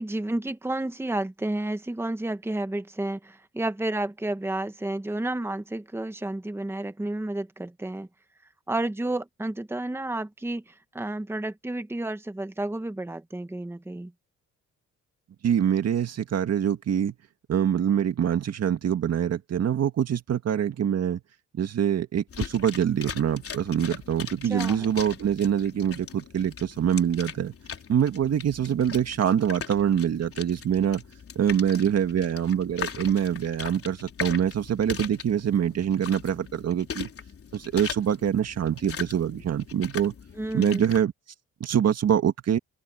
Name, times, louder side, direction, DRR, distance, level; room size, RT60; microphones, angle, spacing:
voice 1, 0.0-8.1 8.7-14.1 24.4-24.9 40.4-40.8, right 1 dB, 10° right, 1.4 m, -31 dB
voice 2, 15.4-17.1 17.5-21.2 21.5-27.5 27.9-31.0 31.4-37.1 37.5-40.1 40.5-41.1 41.6-42.6, right 9 dB, 55° right, 2.0 m, -25 dB
sound 1, 22.3-41.0, left 7 dB, 50° left, 4.0 m, -40 dB
open air
cardioid pair, 90°, 30 cm